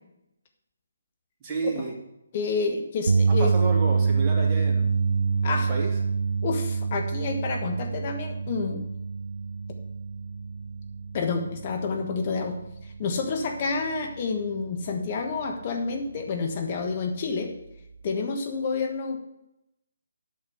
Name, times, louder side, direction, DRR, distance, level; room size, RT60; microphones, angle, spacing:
voice 1, 1.4-1.9 3.3-4.8 5.5-5.9, right 4 dB, 20° right, -2 dB, 2.7 m, -31 dB
voice 2, 2.3-3.5 5.4-5.7 6.4-8.8 11.1-12.5 12.8-17.5 18.0-19.2, left 4 dB, 35° left, 3 dB, 1.4 m, -29 dB
sound 1, 3.1-15.3 15.7-15.9 18.1-18.2, right 5 dB, 70° right, 0.3 m, -27 dB
9.0 x 6.5 x 7.9 m, 0.86 s
figure-of-eight pair, 145°, 0 cm